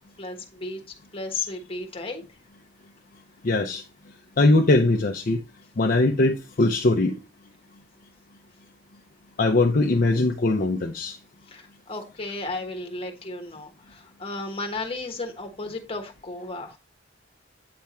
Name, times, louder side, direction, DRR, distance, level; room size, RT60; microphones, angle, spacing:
voice 1, 0.2-0.8 1.1-2.2 11.5-16.8, left 3 dB, 30° left, 1.3 m, -34 dB
voice 2, 3.4-3.8 4.4-5.4 5.8-7.2 9.4-11.2, left 2 dB, 50° left, 0.6 m, -21 dB
8.6 x 3.5 x 4.2 m
head